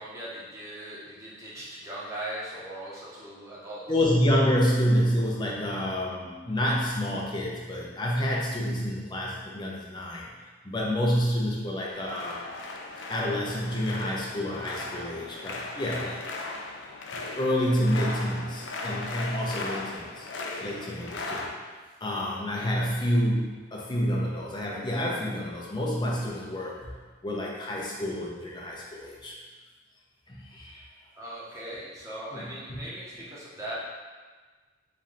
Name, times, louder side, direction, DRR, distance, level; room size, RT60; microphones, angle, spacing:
voice 1, 0.0-3.9 31.2-33.8, right 1 dB, 15° right, -7 dB, 0.8 m, -39 dB
voice 2, 3.9-10.3 10.6-12.4 13.1-16.2 17.4-20.3 20.6-21.5 22.0-27.0 27.2-29.3 30.3-30.9 32.3-32.8, equal, 25° left, -3 dB, 0.6 m, -28 dB
sound 1, 11.9-21.5, left 3 dB, 70° left, 0.4 m, -38 dB
3.2 x 2.7 x 3.8 m, 1.4 s
head